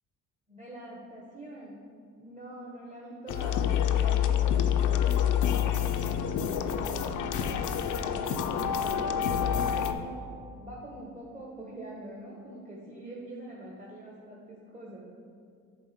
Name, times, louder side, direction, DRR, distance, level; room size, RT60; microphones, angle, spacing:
voice 1, 0.5-1.8 2.2-5.3 5.6-10.3 10.6-15.0, right 1 dB, 20° right, -5 dB, 1.3 m, -44 dB
sound 1, 3.3-9.9, left 9 dB, 55° left, 0.6 m, -27 dB
7.7 x 4.1 x 4.3 m, 2.3 s
supercardioid pair, 65°, 36 cm